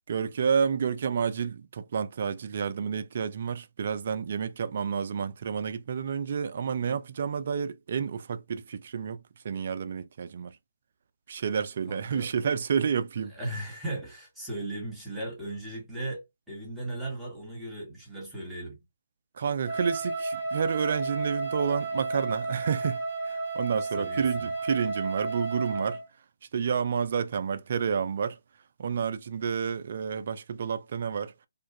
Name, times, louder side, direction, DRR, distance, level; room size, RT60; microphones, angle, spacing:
voice 1, 0.1-10.6 11.3-13.3 19.4-26.0 26.5-28.4 28.8-31.3, right 6 dB, 50° right, 0.3 m, -30 dB
voice 2, 11.9-12.3 13.3-18.8 24.0-24.5, right 1 dB, 5° right, 1.2 m, -37 dB
Wind instrument woodwind instrument, 19.6-26.1, right 3 dB, 50° left, 1.2 m, -32 dB
2.5 x 2.3 x 2.6 m
figure-of-eight pair, 145°, 0 cm